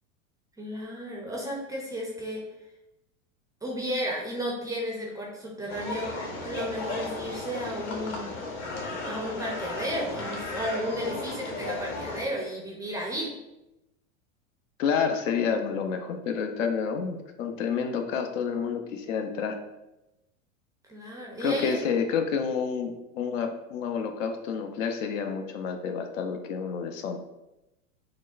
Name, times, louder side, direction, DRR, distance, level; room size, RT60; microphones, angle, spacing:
voice 1, 0.6-2.4 3.6-6.1 6.4-8.3 9.0-13.3 20.9-21.9, equal, 10° right, -2 dB, 0.4 m, -33 dB
sound 1, 5.7-12.2, left 2 dB, 40° left, 1.1 m, -35 dB
voice 2, 7.8-8.1 14.8-19.6 21.4-27.2, left 6 dB, 65° left, 5 dB, 0.7 m, -29 dB
6.1 x 2.1 x 2.4 m, 0.94 s
hypercardioid pair, 115°, 41 cm